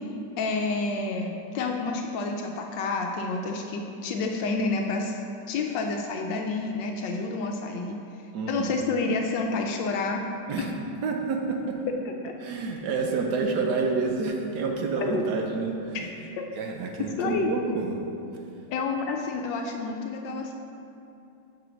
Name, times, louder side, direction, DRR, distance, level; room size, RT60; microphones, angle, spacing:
voice 1, 0.4-5.2 5.5-8.0 8.5-10.2 12.2-12.3 15.0-15.2 15.9-17.5 18.7-20.5, left 3 dB, 80° left, 2 dB, 1.2 m, -29 dB
voice 2, 8.3-8.7 10.5-10.7 11.0-11.8 12.4-16.0 16.6-17.9, right 4 dB, 70° right, 2 dB, 1.2 m, -28 dB
6.0 x 5.0 x 5.9 m, 2.7 s
omnidirectional pair, 2.0 m